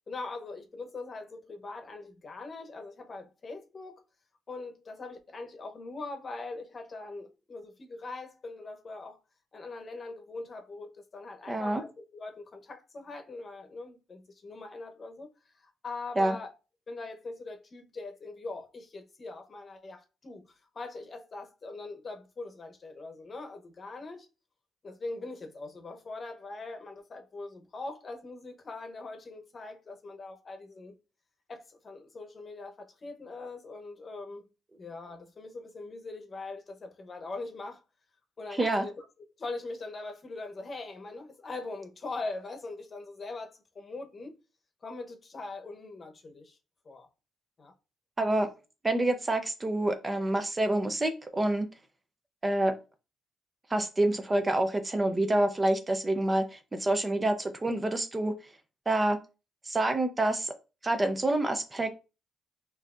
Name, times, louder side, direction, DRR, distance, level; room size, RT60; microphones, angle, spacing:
voice 1, 0.1-4.0 4.5-9.2 9.5-15.3 15.6-16.5 16.9-20.5 20.7-24.3 24.8-31.0 31.5-34.5 34.8-37.8 38.4-39.0 39.4-44.4 44.8-46.6 46.8-47.1 47.6-47.7, left 3 dB, 40° left, 0.9 m, -42 dB
voice 2, 11.5-11.8 16.2-16.3 38.6-38.8 48.2-48.5 48.8-51.7 52.4-52.7 53.7-58.3 58.9-59.2 59.6-60.5 60.8-61.9, right 1 dB, 20° right, 0.6 m, -27 dB
5.7 x 2.7 x 2.5 m
cardioid pair, 90°, 0 cm